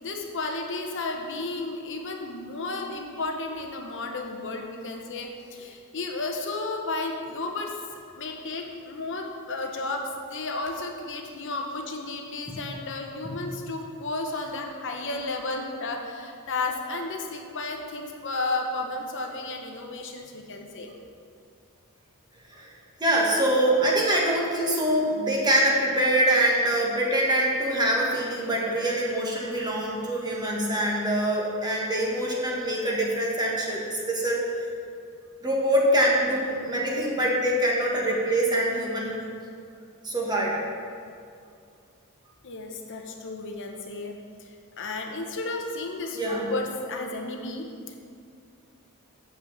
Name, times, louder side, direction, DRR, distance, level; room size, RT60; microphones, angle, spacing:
voice 1, 0.0-7.7 8.2-20.9 42.4-44.1 44.4-44.5 44.8-48.0, left 2 dB, 55° left, 2 dB, 0.9 m, -33 dB
voice 2, 23.0-34.4 35.4-39.1 40.0-40.6 46.1-46.5, right 1 dB, 20° right, -3 dB, 1.5 m, -24 dB
7.2 x 5.9 x 7.2 m, 2.4 s
head